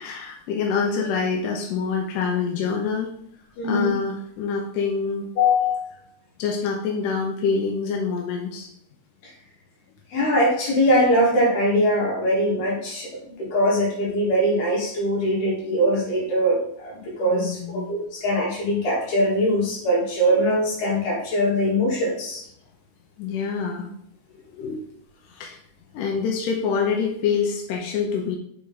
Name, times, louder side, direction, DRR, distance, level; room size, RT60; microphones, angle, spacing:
voice 1, 0.0-3.1 3.6-5.3 6.4-8.7 17.3-17.9 23.2-23.9 24.6-24.8 25.3-25.6 25.9-28.4, left 5 dB, 75° left, 1 dB, 2.0 m, -26 dB
voice 2, 3.6-3.9 5.4-5.8 10.1-22.4, equal, 60° left, -4 dB, 3.6 m, -22 dB
6.8 x 5.3 x 4.0 m, 0.69 s
omnidirectional pair, 4.3 m